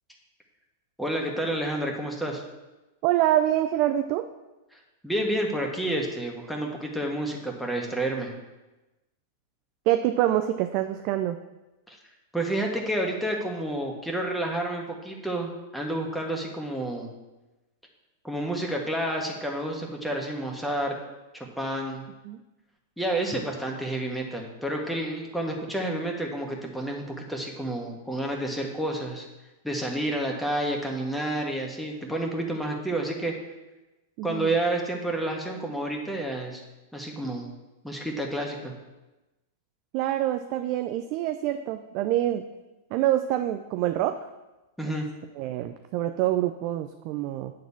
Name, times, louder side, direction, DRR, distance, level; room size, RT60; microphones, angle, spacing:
voice 1, 1.0-2.4 4.7-8.3 11.9-12.0 12.3-17.1 18.2-20.9 21.3-22.0 23.0-29.3 29.6-33.3 34.2-36.6 36.9-37.5 37.8-38.7 44.8-45.1, right 1 dB, ahead, 0 dB, 1.7 m, -30 dB
voice 2, 3.0-4.3 9.9-11.4 22.2-22.4 34.2-34.5 39.9-42.4 42.9-44.2 44.8-45.0 45.4-47.5, right 13 dB, 50° right, 8 dB, 0.5 m, -26 dB
9.3 x 4.0 x 7.2 m, 1.1 s
hypercardioid pair, 105°, 0 cm